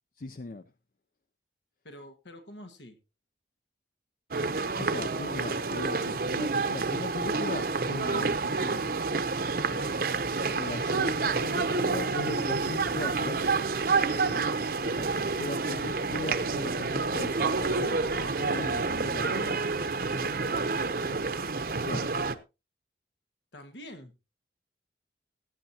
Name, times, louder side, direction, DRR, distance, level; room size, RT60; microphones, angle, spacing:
voice 1, 0.2-0.6 4.8-9.0 10.5-13.4 14.9-19.6 21.8-22.1, left 3 dB, 50° left, 0.5 m, -39 dB
voice 2, 1.8-3.0 9.5-10.1 13.9-14.5 18.0-18.5 20.1-21.2 23.5-24.1, equal, 90° left, 1.7 m, -46 dB
sound 1, 4.3-22.3, right 4 dB, 55° right, 0.8 m, -29 dB
16.5 x 9.0 x 2.8 m
head